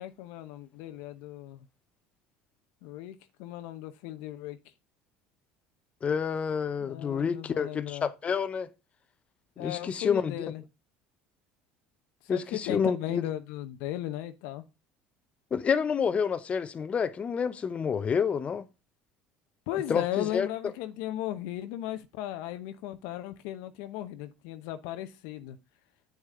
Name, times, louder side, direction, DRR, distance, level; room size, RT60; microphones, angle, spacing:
voice 1, 0.0-1.7 2.8-4.6 6.8-8.1 9.6-10.6 12.2-14.6 19.7-25.6, left 13 dB, 75° left, 0.8 m, -36 dB
voice 2, 6.0-8.7 9.6-10.3 12.3-13.2 15.5-18.6 19.9-20.5, left 6 dB, 35° left, 0.7 m, -28 dB
8.8 x 6.6 x 3.7 m
supercardioid pair, 95°, 4 cm